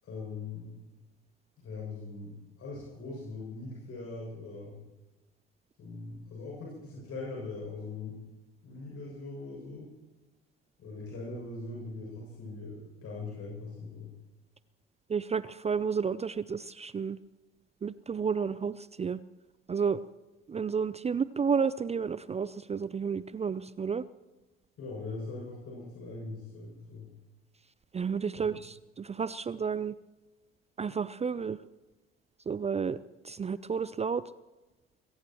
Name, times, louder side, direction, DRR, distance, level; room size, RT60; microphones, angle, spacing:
voice 1, 0.0-0.7 1.6-4.8 5.8-8.2 8.6-9.9 10.8-14.1 24.8-27.1 28.4-28.5, left 3 dB, 50° left, -4 dB, 7.2 m, -41 dB
voice 2, 15.1-17.2 17.8-19.2 19.7-20.0 20.5-24.0 27.9-29.9 30.8-31.6 32.5-33.0 33.2-34.2, right 6 dB, 20° right, 17 dB, 0.5 m, -31 dB
22.0 x 17.5 x 3.1 m, 1.1 s
hypercardioid pair, 60°, 30 cm